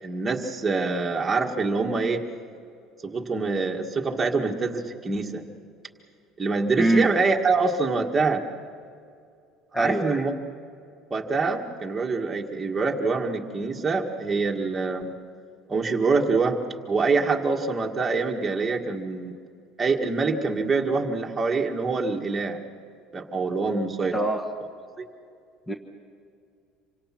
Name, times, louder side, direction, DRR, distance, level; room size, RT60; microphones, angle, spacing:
voice 1, 0.0-2.2 3.0-5.4 6.4-8.4 9.8-10.3 11.1-15.1 15.7-16.6 16.9-19.3 19.8-22.6 23.1-24.2, right 4 dB, 15° right, 1 dB, 1.8 m, -25 dB
voice 2, 6.8-7.1 9.7-10.2 24.1-24.5 25.7-25.8, right 1 dB, 10° left, 4 dB, 1.3 m, -23 dB
27.5 x 24.5 x 6.0 m, 2.4 s
cardioid pair, 160°, 0 cm